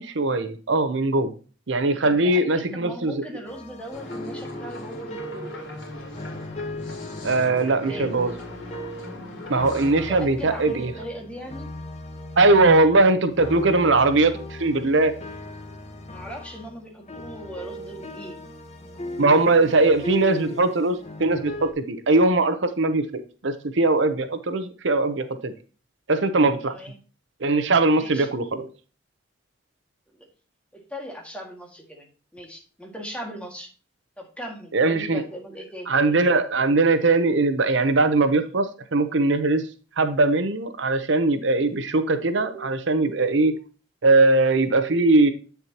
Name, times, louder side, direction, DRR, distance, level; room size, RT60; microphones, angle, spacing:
voice 1, 0.0-1.3 1.7-3.2 7.2-8.3 9.5-10.9 12.4-15.1 19.2-25.5 26.1-26.7 27.4-28.7 34.7-35.2 35.9-38.7 38.9-39.6 40.0-43.5 44.0-45.3, right 2 dB, 65° right, 10 dB, 0.8 m, -20 dB
voice 2, 1.9-5.5 7.8-8.1 10.0-11.7 16.1-18.4 26.6-27.0 27.9-28.3 30.1-30.3 30.7-33.7 34.2-35.9, equal, 5° left, 1 dB, 2.0 m, -39 dB
sound 1, 3.4-9.2 9.5-21.7, left 1 dB, 35° left, 1.2 m, -38 dB
sound 2, 3.9-10.2, left 1 dB, 80° left, 2.8 m, -38 dB
8.5 x 6.9 x 2.9 m, 0.37 s
head